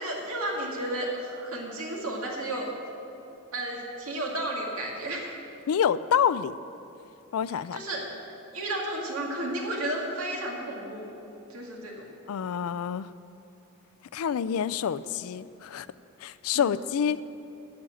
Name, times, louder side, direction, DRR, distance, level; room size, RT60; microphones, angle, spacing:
voice 1, 0.0-2.7 3.5-5.4 7.7-8.0 8.5-11.1 11.5-12.1 16.5-16.7, right 1 dB, 80° right, -1 dB, 2.1 m, -32 dB
voice 2, 5.7-6.6 7.3-7.8 12.3-13.1 14.1-15.9 16.2-17.2, left 8 dB, 80° left, 16 dB, 0.4 m, -27 dB
10.5 x 7.1 x 8.3 m, 2.8 s
head